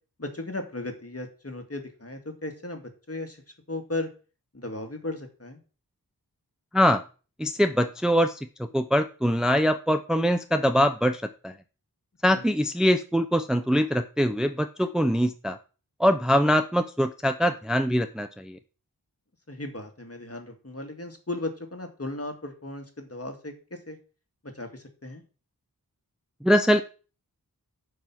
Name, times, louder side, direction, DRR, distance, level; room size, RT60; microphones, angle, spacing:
voice 1, 0.2-2.8 3.1-3.4 3.7-4.1 4.5-5.6 12.3-12.5 19.5-24.0 24.4-25.2, left 2 dB, 40° left, 4 dB, 1.9 m, -36 dB
voice 2, 7.4-8.4 8.7-11.5 12.2-15.6 16.0-18.6 26.4-26.8, equal, ahead, 8 dB, 0.6 m, -23 dB
8.8 x 4.8 x 6.0 m, 0.36 s
wide cardioid pair, 55°, 37 cm